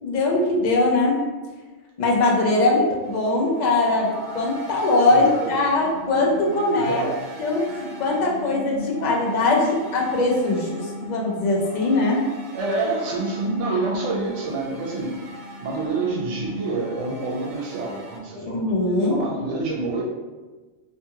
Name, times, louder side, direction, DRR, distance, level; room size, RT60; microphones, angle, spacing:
voice 1, 0.0-1.2 2.0-7.0 7.4-12.3 18.4-19.2, left 2 dB, 55° left, -2 dB, 0.5 m, -21 dB
sound 1, 3.0-18.2, equal, 55° right, 0.6 m, -38 dB
voice 2, 5.1-5.5 6.8-7.3 12.5-15.1 15.6-18.7 19.1-20.0, right 3 dB, 80° right, -3 dB, 0.9 m, -27 dB
2.6 x 2.4 x 2.7 m, 1.3 s
omnidirectional pair, 1.2 m